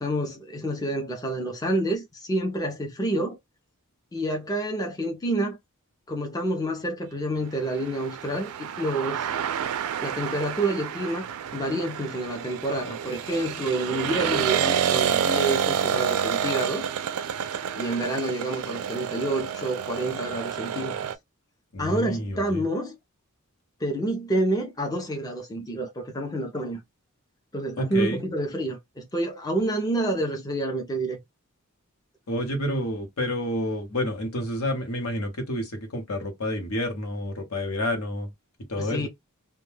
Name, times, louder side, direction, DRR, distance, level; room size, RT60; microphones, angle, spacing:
voice 1, 0.0-3.4 4.1-5.6 6.1-9.3 10.0-11.3 11.5-16.9 17.8-21.0 21.8-23.0 23.8-26.8 27.5-31.2 38.8-39.1, right 1 dB, 15° left, 0.5 m, -28 dB
sound 1, 7.7-21.2, right 8 dB, 75° right, 0.4 m, -29 dB
voice 2, 21.7-22.6 27.8-28.2 32.3-38.3 38.7-39.1, left 1 dB, 75° left, 1.0 m, -29 dB
2.2 x 2.1 x 3.2 m
head